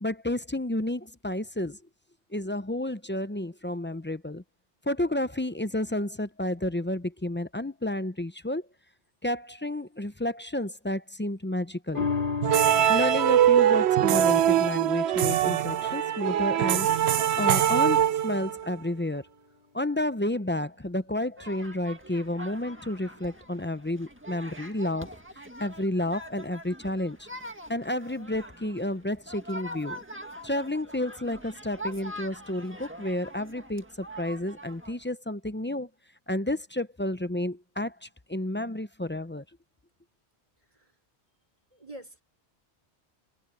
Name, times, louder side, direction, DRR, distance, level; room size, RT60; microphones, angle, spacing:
voice 1, 0.0-1.8 2.3-4.4 4.9-8.7 9.2-12.1 12.9-17.1 17.4-19.2 19.7-27.3 27.7-30.0 30.4-35.9 36.3-39.4, left 1 dB, 15° left, 0.5 m, -31 dB
sound 1, 11.9-18.6 19.1-19.2, left 5 dB, 50° left, 2.7 m, -37 dB
sound 2, 12.4-18.7, right 10 dB, 75° right, 0.9 m, -22 dB
sound 3, 21.4-35.1, equal, 10° right, 1.8 m, -44 dB
voice 2, 41.7-42.2, right 1 dB, 30° right, 5.1 m, -45 dB
omnidirectional pair, 1.1 m